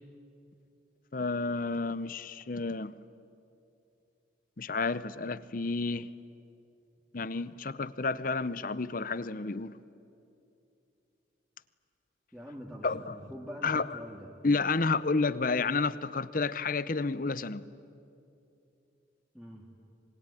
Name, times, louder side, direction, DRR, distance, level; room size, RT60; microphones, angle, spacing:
voice 1, 1.1-2.9 4.6-6.1 7.1-9.7 12.8-13.2 13.6-14.0 14.4-17.6, left 3 dB, 45° left, 0.7 m, -30 dB
voice 2, 12.3-14.3 19.3-19.7, equal, ahead, 2.1 m, -44 dB
26.0 x 22.5 x 9.9 m
head